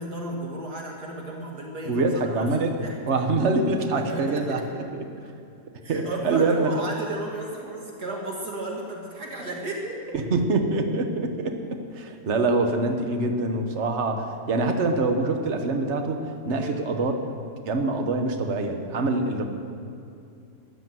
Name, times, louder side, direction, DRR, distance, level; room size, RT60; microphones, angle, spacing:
voice 1, 0.0-3.0 3.9-4.4 5.8-10.0 16.5-16.8, right 2 dB, 75° right, -1 dB, 2.2 m, -34 dB
voice 2, 1.9-2.7 3.0-4.8 5.9-6.7 10.1-11.6 11.9-17.1 17.7-19.5, right 3 dB, 45° right, 5 dB, 1.4 m, -25 dB
14.0 x 11.5 x 7.7 m, 2.6 s
omnidirectional pair, 1.7 m